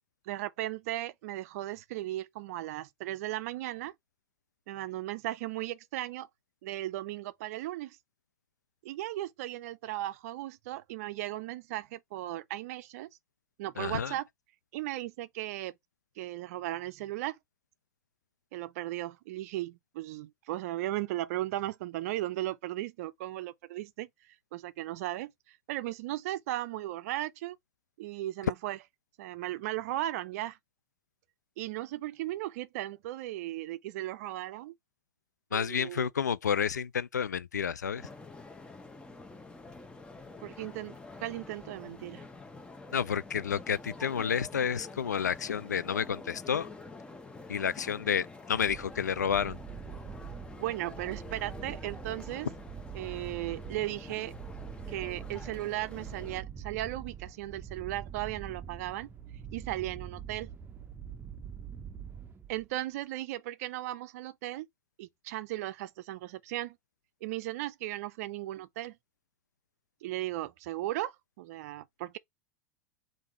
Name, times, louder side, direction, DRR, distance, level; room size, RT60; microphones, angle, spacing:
voice 1, 0.3-3.9 4.7-6.3 6.6-8.0 8.8-13.1 13.6-14.3 14.7-15.7 16.2-17.4 18.5-24.1 24.5-27.6 28.0-28.8 29.2-30.6 31.6-34.7 35.5-36.1 40.4-42.3 50.6-52.5 52.9-54.3 54.9-59.1 59.5-60.5 62.5-64.7 65.0-66.8 67.2-69.0 70.0-72.2, right 15 dB, 60° right, 0.5 m, -36 dB
voice 2, 13.8-14.1 35.5-38.0 42.9-46.7 47.5-49.6, left 7 dB, 85° left, 0.4 m, -30 dB
sound 1, 37.9-56.4, left 3 dB, 10° left, 0.8 m, -47 dB
sound 2, 48.5-62.8, right 8 dB, 20° right, 0.6 m, -44 dB
3.5 x 2.6 x 4.5 m
hypercardioid pair, 90°, 9 cm